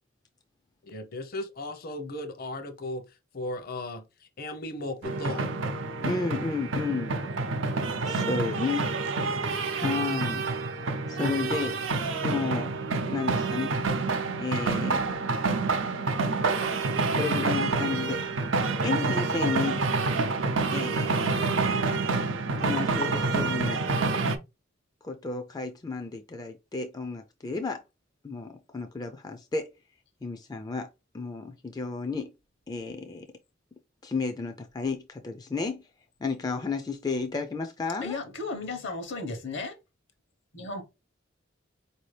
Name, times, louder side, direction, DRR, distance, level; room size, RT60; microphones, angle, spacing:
voice 1, 0.9-3.0 3.3-4.0 4.4-5.5 9.6-9.8, left 1 dB, 50° left, 0.7 m, -36 dB
sound 1, 5.0-24.4, right 3 dB, 85° right, 0.6 m, -28 dB
voice 2, 6.0-7.2 8.1-8.9 9.7-10.5 11.1-11.8 12.2-12.7 13.1-13.8 14.4-15.0 17.1-18.2 18.8-19.8 20.7-21.2 22.6-23.8 25.0-27.8 28.2-29.7 30.2-30.9 31.1-32.3 32.7-33.3 34.0-35.9 36.2-38.2, left 4 dB, 20° left, 0.3 m, -32 dB
voice 3, 38.0-39.7 40.5-40.8, left 3 dB, 70° left, 1.0 m, -34 dB
4.4 x 2.7 x 3.2 m
head